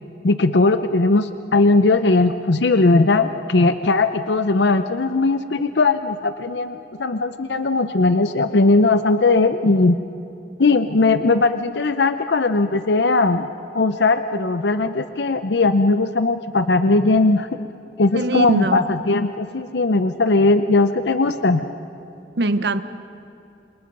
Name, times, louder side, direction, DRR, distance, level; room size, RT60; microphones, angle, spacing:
voice 1, 0.2-10.0 10.6-13.5 13.7-17.5 18.0-21.6, left 3 dB, 75° left, 10 dB, 0.7 m, -18 dB
voice 2, 18.1-18.8 22.4-22.8, right 2 dB, 65° right, 12 dB, 1.0 m, -21 dB
28.5 x 28.0 x 5.5 m, 2.8 s
head